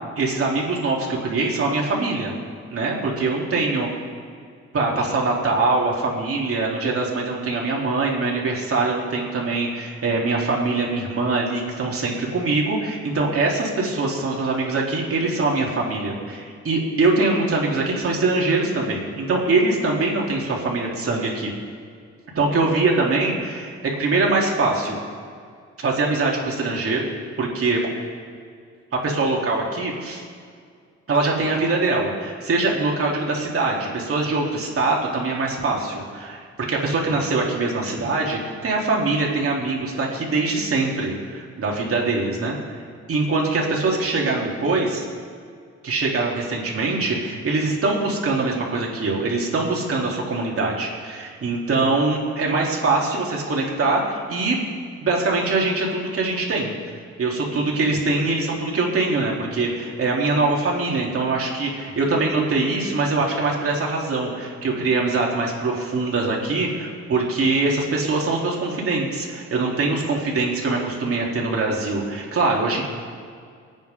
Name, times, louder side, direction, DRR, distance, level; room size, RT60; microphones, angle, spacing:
voice 1, 0.2-2.4 2.7-3.9 4.7-21.5 22.3-25.0 25.8-27.1 27.4-27.8 29.0-30.2 31.1-42.8 43.1-45.0 45.8-54.6 55.0-56.7 57.2-72.8, right 3 dB, 50° right, -2 dB, 3.5 m, -23 dB
24.0 x 9.2 x 3.9 m, 2.2 s
cardioid pair, 90°, 30 cm